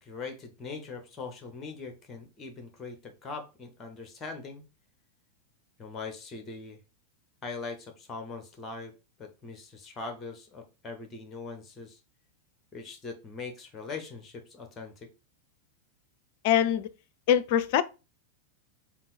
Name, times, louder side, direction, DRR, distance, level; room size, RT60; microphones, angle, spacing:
voice 1, 0.0-4.6 5.8-6.8 7.4-8.9 9.2-12.0 12.7-15.1, left 4 dB, 20° left, 1.0 m, -41 dB
voice 2, 16.4-16.9 17.3-17.8, left 10 dB, 50° left, 0.4 m, -23 dB
3.7 x 2.6 x 4.0 m
figure-of-eight pair, 90°, 0 cm